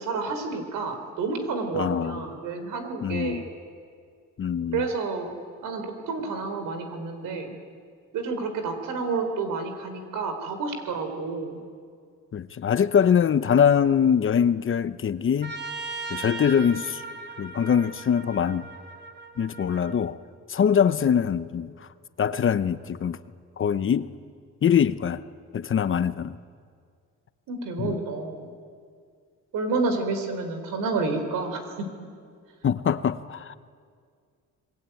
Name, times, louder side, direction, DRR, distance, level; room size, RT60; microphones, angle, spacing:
voice 1, 0.0-3.4 4.7-5.3 5.6-7.5 8.1-11.6 21.0-21.1 27.5-28.5 29.5-31.9, right 4 dB, 85° right, 4.2 m, -30 dB
voice 2, 1.7-2.2 3.0-3.5 4.4-4.9 12.3-15.5 16.1-17.0 17.4-18.7 19.4-20.2 20.5-21.7 22.2-23.2 23.6-24.1 24.6-25.2 25.5-26.4 27.8-28.0 32.6-33.6, left 8 dB, 40° left, 0.9 m, -23 dB
Trumpet, 15.4-20.0, right 3 dB, 35° right, 2.4 m, -38 dB
26.5 x 21.0 x 9.2 m
cardioid pair, 110°, 31 cm